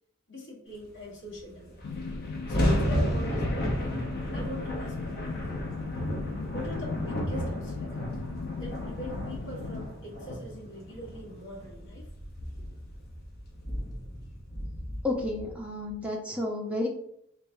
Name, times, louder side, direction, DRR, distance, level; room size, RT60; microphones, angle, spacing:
voice 1, 0.3-1.8 2.5-4.0 4.3-5.7 6.5-8.1 8.6-12.1, equal, 65° left, -6 dB, 1.4 m, -42 dB
sound 1, 1.3-1.4 1.6-15.9, equal, 50° left, 0.8 m, -33 dB
sound 2, 1.8-9.8, left 4 dB, 90° left, 0.4 m, -37 dB
voice 2, 15.0-16.9, left 2 dB, 5° right, -1 dB, 0.6 m, -31 dB
3.3 x 3.2 x 2.6 m, 0.72 s
head